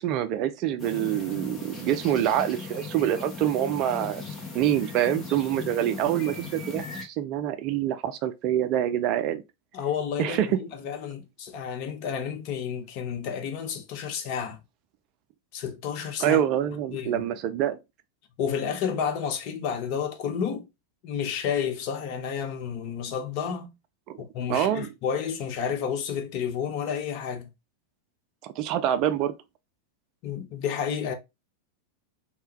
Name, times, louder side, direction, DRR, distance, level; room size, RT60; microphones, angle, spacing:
voice 1, 0.0-9.4 10.2-10.6 16.2-17.8 24.1-24.2 24.5-24.9 28.4-29.3, right 11 dB, 40° right, 0.3 m, -26 dB
sound 1, 0.8-7.0, left 4 dB, 15° left, 1.0 m, -38 dB
voice 2, 9.7-14.6 15.5-16.4 16.9-17.2 18.4-20.7 21.0-23.7 24.2-27.5 30.2-31.1, left 7 dB, 45° left, 0.6 m, -31 dB
3.3 x 2.2 x 3.0 m
figure-of-eight pair, 90°, 0 cm